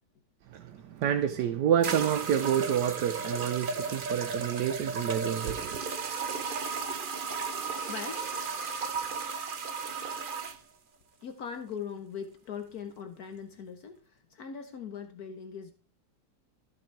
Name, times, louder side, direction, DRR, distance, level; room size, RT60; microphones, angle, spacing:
voice 1, 0.5-5.8, right 9 dB, 75° right, 1.3 m, -28 dB
sound 1, 1.0-1.1 1.8-10.6, right 5 dB, 40° right, 0.8 m, -34 dB
voice 2, 7.7-9.2 11.2-15.7, left 7 dB, 65° left, 1.5 m, -41 dB
14.0 x 5.7 x 4.6 m
omnidirectional pair, 1.8 m